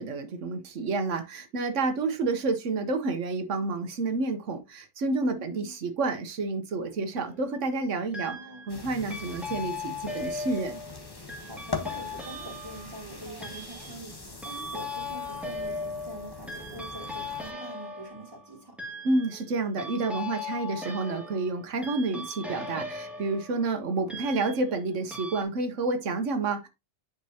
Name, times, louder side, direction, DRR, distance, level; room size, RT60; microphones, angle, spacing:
voice 1, 0.0-8.4 8.7-10.8 19.0-26.7, right 3 dB, 90° right, 1.3 m, -29 dB
voice 2, 5.3-5.7 8.2-8.7 11.4-18.8, right 1 dB, 20° right, 2.6 m, -44 dB
sound 1, 6.8-7.4 8.1-8.8 9.1-24.8 25.1-25.4, left 3 dB, ahead, 2.0 m, -39 dB
sound 2, 8.7-17.5, left 4 dB, 20° left, 1.2 m, -42 dB
9.4 x 5.2 x 2.8 m
omnidirectional pair, 1.2 m